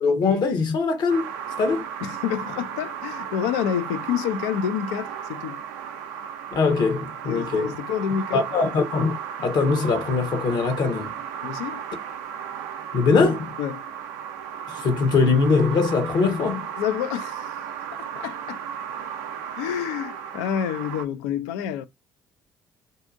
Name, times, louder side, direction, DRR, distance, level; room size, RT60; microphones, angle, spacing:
voice 1, 0.0-1.3 1.6-1.9 6.5-7.7 8.3-11.2 12.9-13.5 14.7-16.7, left 4 dB, 55° left, 0.9 m, -22 dB
sound 1, 1.1-21.0, right 8 dB, 70° right, 0.4 m, -35 dB
voice 2, 2.0-5.6 7.3-8.7 11.4-11.8 13.6-13.8 16.8-17.6 17.9-18.6 19.5-21.9, left 9 dB, 70° left, 0.4 m, -28 dB
2.7 x 2.4 x 2.5 m
figure-of-eight pair, 50°, 9 cm